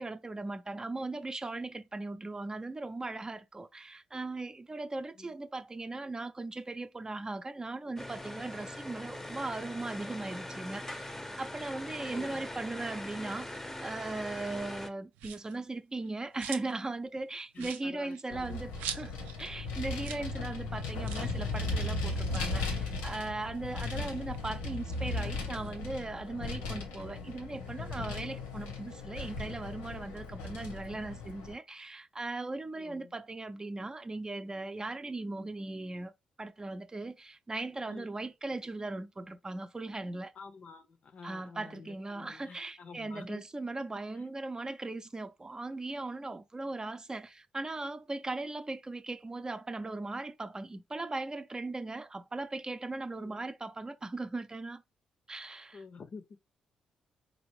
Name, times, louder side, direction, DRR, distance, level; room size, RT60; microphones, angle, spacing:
voice 1, 0.0-36.1 36.4-40.3 41.2-54.8 55.3-55.8, right 2 dB, 25° right, 0.6 m, -38 dB
sound 1, 8.0-14.9, left 1 dB, 10° left, 0.7 m, -42 dB
voice 2, 12.1-12.4 17.5-18.7 32.8-33.1 37.9-38.1 40.4-43.4 53.2-53.4 55.7-56.4, left 5 dB, 50° left, 0.6 m, -49 dB
sound 2, 15.1-15.6 16.0-16.9 17.2-17.3 17.5-19.4 19.7-19.8 20.0-20.3 20.6-20.7 21.0-21.4 22.1-23.8 24.3-25.7, right 9 dB, 75° right, 0.5 m, -44 dB
Vehicle, 18.3-31.5, left 3 dB, 80° left, 0.9 m, -37 dB
4.2 x 2.6 x 3.1 m
hypercardioid pair, 45°, 3 cm